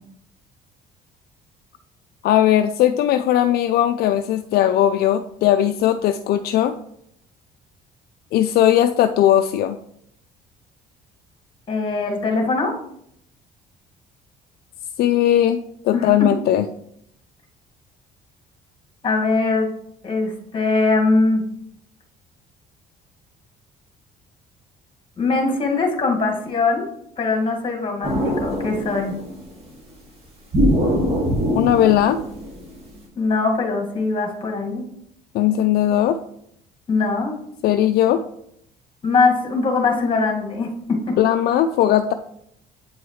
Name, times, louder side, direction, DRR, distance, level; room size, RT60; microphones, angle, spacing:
voice 1, 2.2-6.7 8.3-9.8 15.0-15.6 15.8-16.7 31.5-32.2 35.3-36.2 37.6-38.2 41.2-42.1, left 11 dB, 65° left, 8 dB, 0.4 m, -18 dB
voice 2, 11.7-12.8 15.9-16.3 19.0-19.7 20.0-21.4 25.2-26.9 27.2-29.1 33.2-34.8 36.9-37.3 39.0-41.2, left 3 dB, 30° left, 2 dB, 1.8 m, -21 dB
sound 1, 28.0-29.5 30.5-33.0, equal, 35° right, 2.1 m, -22 dB
8.5 x 4.7 x 3.1 m, 0.73 s
cardioid pair, 110°, 17 cm